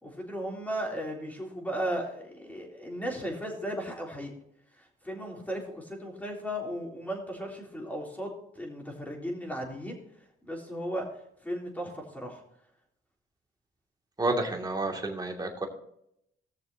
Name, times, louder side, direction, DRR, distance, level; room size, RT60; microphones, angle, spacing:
voice 1, 0.0-4.3 4.8-10.0 10.4-12.4, equal, 10° left, -1 dB, 3.6 m, -36 dB
voice 2, 14.2-15.7, right 2 dB, 20° right, 1 dB, 2.6 m, -30 dB
19.0 x 6.8 x 2.9 m, 0.75 s
cardioid pair, 90°, 20 cm